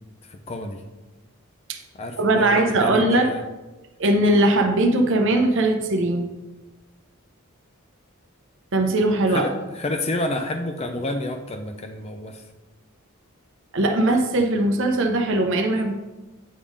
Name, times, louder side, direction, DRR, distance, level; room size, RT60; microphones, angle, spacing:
voice 1, 0.3-0.8 1.9-3.4 9.3-12.4, left 2 dB, 30° left, 6 dB, 0.4 m, -29 dB
voice 2, 2.2-3.3 4.0-6.3 8.7-9.5 13.7-15.9, right 1 dB, 60° right, 3 dB, 0.7 m, -20 dB
8.4 x 3.7 x 5.0 m, 1.1 s
head